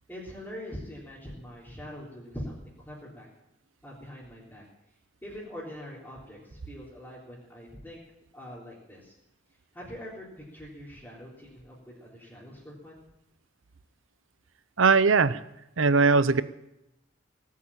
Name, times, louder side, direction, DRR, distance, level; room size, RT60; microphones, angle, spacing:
voice 1, 0.1-3.3 3.8-4.6 5.2-8.0 8.3-9.1 9.7-13.0, equal, 10° left, -8 dB, 3.6 m, -43 dB
voice 2, 14.8-15.4 15.8-16.4, right 4 dB, 80° right, 15 dB, 0.7 m, -20 dB
18.5 x 8.5 x 8.9 m, 0.88 s
head